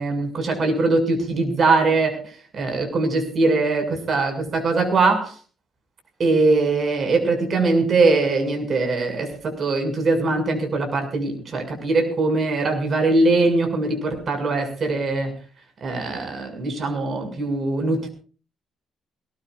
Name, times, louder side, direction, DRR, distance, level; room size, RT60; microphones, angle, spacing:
voice 1, 0.0-5.3 6.2-15.3 15.8-18.1, right 3 dB, 45° right, 4 dB, 6.9 m, -21 dB
21.5 x 20.0 x 2.6 m, 0.37 s
figure-of-eight pair, 45°, 0 cm